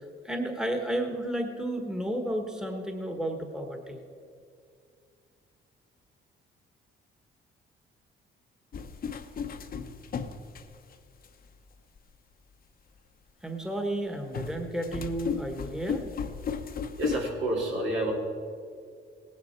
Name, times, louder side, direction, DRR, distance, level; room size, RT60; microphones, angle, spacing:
voice 1, 0.2-4.0 13.4-16.1, right 1 dB, 5° right, 4 dB, 1.3 m, -32 dB
sound 1, 8.7-11.3 12.0-12.1 14.3-17.3, left 6 dB, 50° left, 0.9 m, -35 dB
voice 2, 17.0-18.1, right 1 dB, 80° right, -2 dB, 3.3 m, -29 dB
18.0 x 9.6 x 4.5 m, 2.3 s
cardioid pair, 90°, 20 cm